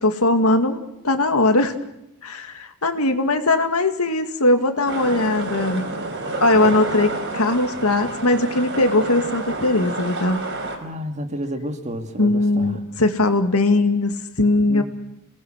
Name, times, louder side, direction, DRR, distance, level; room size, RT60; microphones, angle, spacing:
voice 1, 0.0-1.7 2.2-5.9 6.4-10.4 12.2-14.8, left 2 dB, 85° left, 7 dB, 2.2 m, -20 dB
sound 1, 4.9-10.8, right 2 dB, 55° right, 4.9 m, -29 dB
voice 2, 10.8-12.8 14.6-14.8, equal, 30° right, 6 dB, 2.1 m, -30 dB
28.0 x 19.5 x 6.4 m, 0.85 s
head